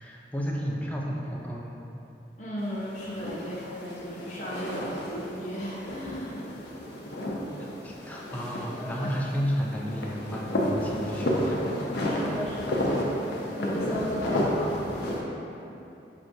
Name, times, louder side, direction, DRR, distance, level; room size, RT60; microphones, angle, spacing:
voice 1, 0.0-1.8 7.8-11.7 13.4-13.6, equal, 10° left, -3 dB, 0.3 m, -32 dB
voice 2, 2.4-6.5 8.7-9.2 12.0-12.9 13.6-14.8, equal, 40° left, -8 dB, 0.8 m, -35 dB
sound 1, 2.6-15.2, equal, 70° left, 0.5 m, -31 dB
5.9 x 2.6 x 2.6 m, 2.9 s
head